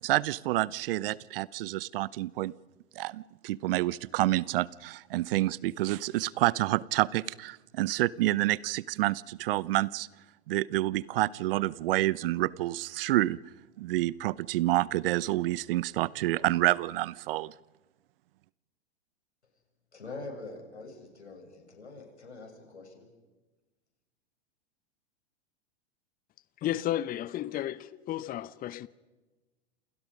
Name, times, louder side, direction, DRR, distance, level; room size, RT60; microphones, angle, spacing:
voice 1, 0.0-2.5 3.0-10.1 10.5-13.4 13.8-17.5, right 16 dB, 55° right, 0.8 m, -28 dB
voice 2, 19.9-23.1, left 3 dB, 90° left, 7.6 m, -44 dB
voice 3, 26.6-28.9, left 13 dB, 25° left, 0.8 m, -33 dB
29.0 x 28.0 x 5.2 m
hypercardioid pair, 100°, 33 cm